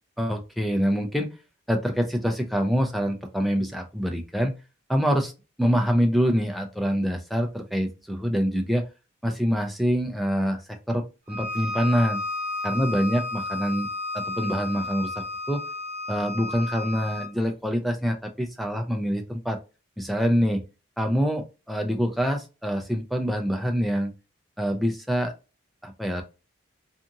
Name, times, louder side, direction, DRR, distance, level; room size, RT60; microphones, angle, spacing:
voice 1, 0.2-1.3 1.7-4.5 4.9-5.3 5.6-8.8 9.2-10.6 10.9-12.2 12.6-13.9 14.1-15.6 16.1-19.6 20.0-20.6 21.0-24.1 24.6-25.3 25.8-26.2, equal, ahead, 4 dB, 0.4 m, -25 dB
Bowed string instrument, 11.3-17.3, left 3 dB, 35° right, 1.1 m, -32 dB
2.6 x 2.4 x 2.8 m, 0.30 s
head